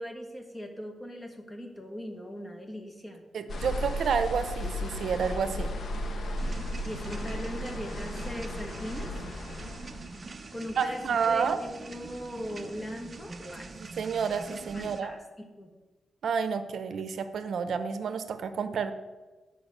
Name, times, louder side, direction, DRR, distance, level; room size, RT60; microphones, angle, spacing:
voice 1, 0.0-3.2 5.9-6.0 6.8-9.1 10.5-13.8 14.7-15.2 15.5-15.7, equal, 20° left, 3 dB, 1.4 m, -39 dB
voice 2, 3.3-5.7 10.8-11.6 13.8-15.1 16.2-18.9, right 6 dB, 70° right, 10 dB, 0.7 m, -30 dB
sound 1, 3.5-10.3, left 1 dB, 60° left, 1.0 m, -35 dB
sound 2, 6.4-15.0, right 3 dB, 30° right, 0.7 m, -44 dB
9.1 x 4.9 x 7.8 m, 1.2 s
wide cardioid pair, 150°, 0 cm